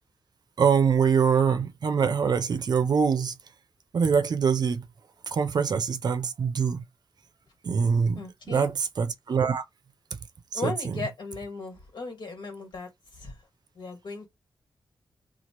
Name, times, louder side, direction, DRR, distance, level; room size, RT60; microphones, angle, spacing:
voice 1, 0.6-3.3 3.9-4.8 5.3-6.8 7.6-8.2 8.5-9.6 10.5-11.1, right 6 dB, 55° right, 0.5 m, -24 dB
voice 2, 8.1-8.7 10.5-13.4 13.7-14.3, left 4 dB, 70° left, 1.7 m, -37 dB
2.9 x 2.4 x 2.9 m
wide cardioid pair, 105°, 8 cm